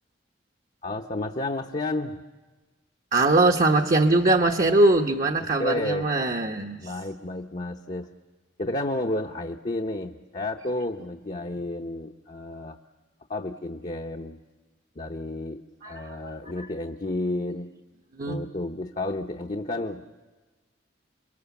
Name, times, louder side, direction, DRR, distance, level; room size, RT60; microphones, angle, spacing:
voice 1, 0.8-2.2 5.6-6.1 6.8-8.1 8.6-12.8 13.3-14.4 15.0-17.7 18.3-20.2, left 1 dB, 40° left, 1 dB, 0.8 m, -31 dB
voice 2, 3.1-6.9 15.8-16.1 16.6-16.7 18.1-18.4, right 2 dB, 45° right, 2 dB, 1.0 m, -22 dB
29.0 x 23.0 x 7.1 m, 1.3 s
head